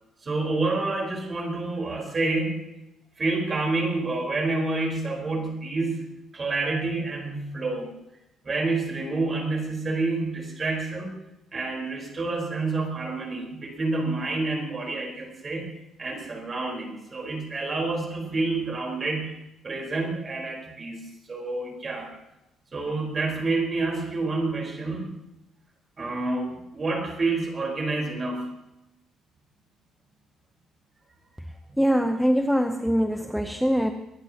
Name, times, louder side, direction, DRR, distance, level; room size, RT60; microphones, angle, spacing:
voice 1, 0.2-2.7 3.2-7.9 8.4-11.1 11.5-15.7 16.0-19.3 19.6-22.1 22.7-25.1 26.0-28.6, right 3 dB, 25° right, 1 dB, 4.3 m, -28 dB
voice 2, 31.8-33.9, equal, ahead, 6 dB, 0.7 m, -23 dB
24.0 x 19.0 x 2.9 m, 0.89 s
cardioid pair, 170°, 0 cm